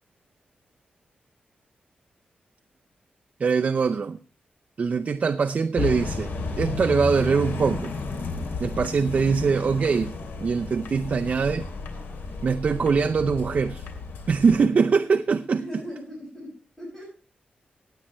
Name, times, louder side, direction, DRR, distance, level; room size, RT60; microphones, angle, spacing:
voice 1, 3.4-4.2 4.8-6.3 6.6-7.9 8.6-10.1 10.4-11.7 12.4-13.8 14.3-15.6, right 5 dB, 50° right, 0.5 m, -22 dB
sound 1, 5.8-14.7, left 4 dB, 90° left, 2.8 m, -33 dB
voice 2, 15.5-17.0, equal, 5° left, 5.9 m, -39 dB
18.5 x 8.7 x 3.0 m
wide cardioid pair, 135°, 3 cm